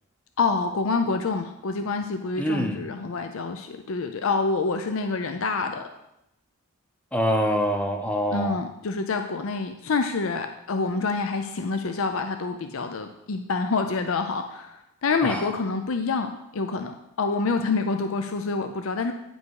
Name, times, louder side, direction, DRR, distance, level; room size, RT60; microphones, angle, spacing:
voice 1, 0.4-5.9 8.3-19.1, left 4 dB, 65° left, 7 dB, 0.5 m, -27 dB
voice 2, 2.4-2.8 7.1-8.6 15.2-15.4, equal, 5° left, 4 dB, 0.7 m, -25 dB
9.4 x 5.4 x 4.7 m, 0.84 s
head